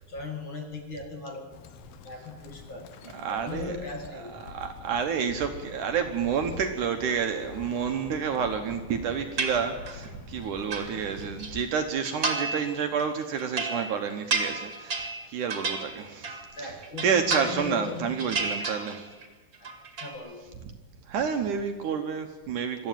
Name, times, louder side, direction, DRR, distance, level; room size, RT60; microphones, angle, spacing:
voice 1, 0.1-1.6 2.0-3.0 3.3-4.4 15.2-15.3 16.6-18.2 19.6-19.7 20.0-20.6, left 3 dB, 45° left, 4 dB, 1.8 m, -38 dB
Bird, 1.5-11.6, left 5 dB, 75° left, 2.8 m, -45 dB
voice 2, 3.1-3.8 4.2-16.7 17.0-19.0 21.1-22.9, right 7 dB, 70° right, 6 dB, 2.2 m, -29 dB
sound 1, 9.4-10.1 10.4-11.5 12.0-12.7 13.0-16.5 16.8-17.9 18.2-19.3 19.5-20.1, right 3 dB, 30° right, 1.8 m, -32 dB
22.0 x 14.0 x 9.0 m, 1.3 s
omnidirectional pair, 4.4 m